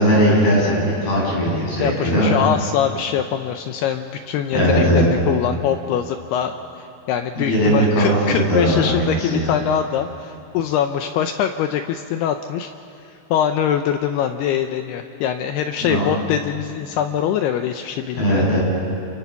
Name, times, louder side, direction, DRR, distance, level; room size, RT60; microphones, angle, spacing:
voice 1, 0.0-2.3 4.5-5.1 7.4-9.5 15.8-16.1 18.2-18.6, equal, 55° left, -5 dB, 9.3 m, -18 dB
voice 2, 1.8-12.7 13.1-18.6, left 9 dB, 80° left, 7 dB, 2.4 m, -23 dB
29.5 x 27.5 x 5.9 m, 2.6 s
omnidirectional pair, 5.3 m